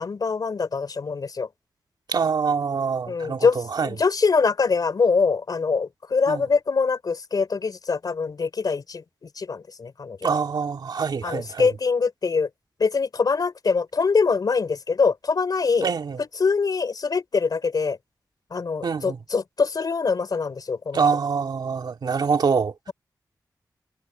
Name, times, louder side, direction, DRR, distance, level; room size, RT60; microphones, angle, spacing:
voice 1, 0.0-1.5 3.1-3.6 3.8-9.0 9.4-10.2 11.2-12.5 12.8-15.9 16.2-18.0 18.5-21.0, left 5 dB, 65° left, 3.6 m, -23 dB
voice 2, 2.1-3.9 6.3-6.4 10.2-11.7 15.8-16.2 18.8-19.2 20.9-22.9, right 5 dB, 75° right, 2.3 m, -25 dB
wide cardioid pair, 95°, 7 cm